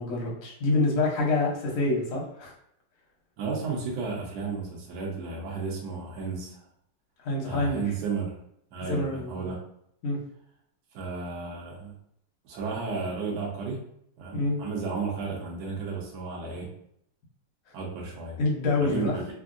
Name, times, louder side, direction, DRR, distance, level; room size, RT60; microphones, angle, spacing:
voice 1, 0.0-2.5 7.2-7.8 8.8-9.5 10.0-10.2 14.3-14.6 18.4-19.2, left 2 dB, 60° left, -2 dB, 0.9 m, -26 dB
voice 2, 3.4-6.6 7.4-8.4 8.7-9.6 10.9-11.9 12.4-13.8 14.2-16.7 17.7-18.4 18.8-19.3, right 4 dB, 65° right, -2 dB, 1.2 m, -33 dB
3.5 x 2.1 x 2.5 m, 0.71 s
omnidirectional pair, 2.3 m